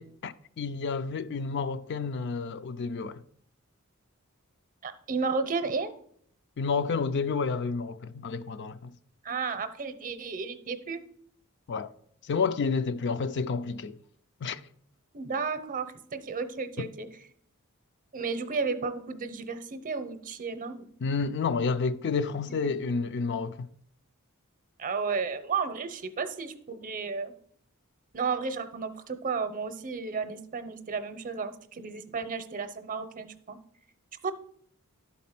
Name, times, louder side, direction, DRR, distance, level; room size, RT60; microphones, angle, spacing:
voice 1, 0.0-3.2 6.6-8.9 11.7-11.9 12.2-14.0 14.4-14.6 16.8-16.9 21.0-23.7, left 5 dB, 55° left, 0.4 m, -30 dB
voice 2, 4.8-5.9 9.2-11.0 15.1-17.1 18.1-20.9 22.6-22.7 24.8-27.3 28.1-33.6 34.2-34.3, right 5 dB, 40° right, 0.7 m, -33 dB
11.5 x 4.2 x 5.8 m
head